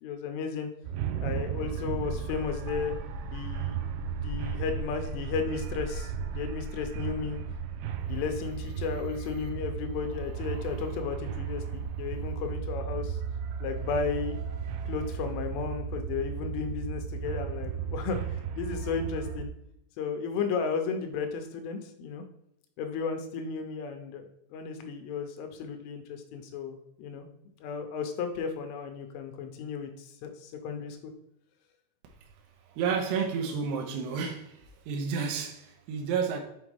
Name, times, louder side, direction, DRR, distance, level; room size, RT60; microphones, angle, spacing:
voice 1, 0.0-0.7 1.2-2.9 3.3-3.8 4.1-7.4 8.0-13.2 13.6-14.4 14.9-19.5 20.0-22.2 22.8-27.3 27.6-31.0, left 6 dB, 85° left, 6 dB, 3.2 m, -34 dB
sound 1, 0.8-19.5, right 7 dB, 90° right, 2.4 m, -35 dB
voice 2, 32.8-34.6 34.9-36.4, right 6 dB, 75° right, 1 dB, 2.7 m, -30 dB
7.3 x 5.7 x 3.2 m, 0.78 s
omnidirectional pair, 5.8 m